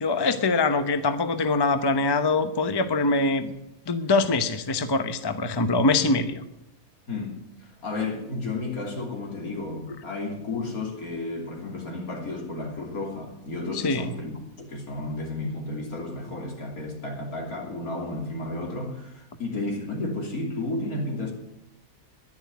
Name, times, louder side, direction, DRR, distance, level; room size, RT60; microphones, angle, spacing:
voice 1, 0.0-3.5 3.9-6.4 13.7-14.1, left 3 dB, 20° left, 0.7 m, -23 dB
voice 2, 7.1-21.3, left 2 dB, 80° left, 3.6 m, -32 dB
11.0 x 10.0 x 9.4 m
omnidirectional pair, 1.5 m